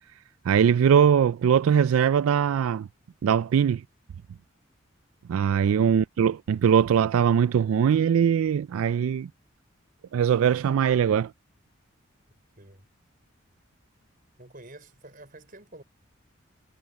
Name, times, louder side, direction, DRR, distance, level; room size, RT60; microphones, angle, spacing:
voice 1, 0.5-2.9 3.2-3.8 5.3-9.3 10.1-11.3, right 8 dB, 85° right, 0.3 m, -21 dB
voice 2, 12.3-12.9 14.4-15.8, right 2 dB, 40° right, 5.5 m, -49 dB
head